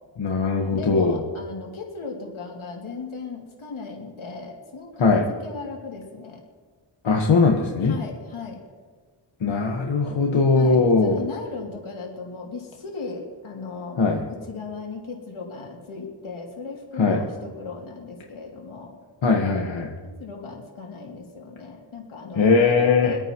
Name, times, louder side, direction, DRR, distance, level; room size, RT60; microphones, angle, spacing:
voice 1, 0.2-1.2 5.0-5.2 7.0-7.9 9.4-11.2 14.0-14.2 17.0-17.2 19.2-19.9 22.3-23.1, left 4 dB, 70° left, 0 dB, 1.5 m, -20 dB
voice 2, 0.7-6.4 7.8-8.6 10.5-14.0 14.3-19.0 20.2-23.2, left 4 dB, 90° left, -1 dB, 2.8 m, -37 dB
24.5 x 9.0 x 3.1 m, 1.5 s
cardioid pair, 50°, 47 cm